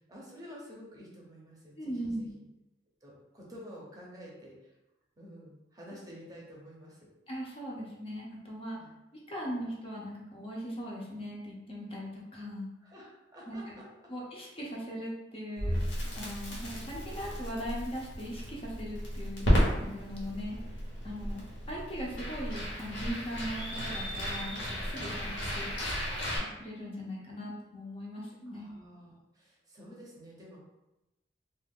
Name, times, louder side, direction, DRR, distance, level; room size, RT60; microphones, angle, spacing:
voice 1, 0.0-2.3 3.0-4.7 5.2-7.1 8.7-8.9 12.8-13.8 25.0-25.2 28.5-30.6, equal, 20° right, -4 dB, 0.7 m, -50 dB
voice 2, 1.8-2.3 7.3-8.8 9.3-12.7 13.5-13.8 14.1-19.5 19.8-20.6 21.0-21.4 21.7-26.0 26.4-28.7, equal, 30° left, -4 dB, 0.6 m, -39 dB
Crackle, 15.6-26.4, equal, 75° left, 1.0 m, -33 dB
2.5 x 2.3 x 3.5 m, 0.96 s
head